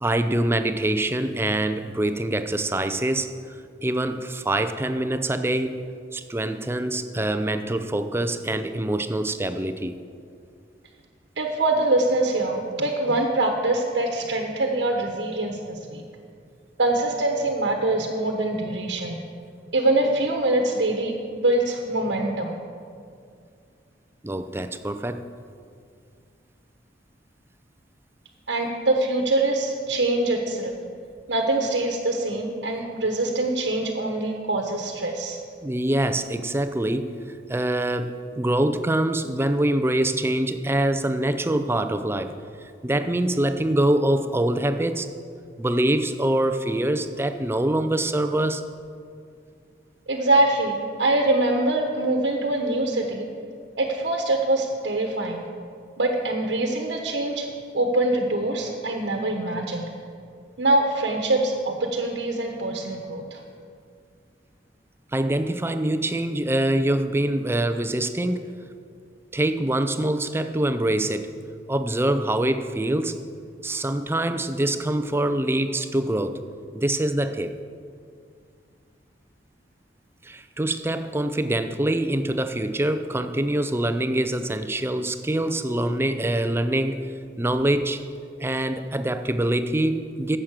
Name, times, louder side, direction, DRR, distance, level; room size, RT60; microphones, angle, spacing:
voice 1, 0.0-3.3 3.8-5.8 6.1-10.0 24.2-25.3 35.6-37.1 37.5-42.4 42.8-45.1 45.6-48.6 65.1-68.5 69.3-71.3 71.7-73.1 73.6-76.4 76.7-77.5 80.2-88.0 88.4-90.4, right 1 dB, 15° right, 9 dB, 0.5 m, -24 dB
voice 2, 11.4-16.0 16.8-19.2 19.7-22.6 28.5-30.7 31.3-35.4 50.1-53.3 53.8-55.4 56.0-57.5 57.7-59.9 60.6-63.4, right 2 dB, 75° right, 2 dB, 1.1 m, -24 dB
11.5 x 7.5 x 7.4 m, 2.3 s
head